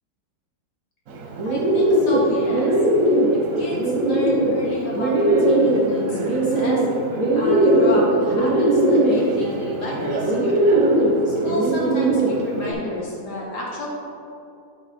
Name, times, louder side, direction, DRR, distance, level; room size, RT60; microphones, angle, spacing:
Bird, 1.1-12.7, right 1 dB, 55° right, 1.0 m, -19 dB
voice 1, 1.4-2.7 3.3-6.8 7.3-10.7 11.3-13.9, left 1 dB, 70° left, -4 dB, 2.1 m, -31 dB
11.0 x 3.8 x 4.2 m, 2.7 s
omnidirectional pair, 1.9 m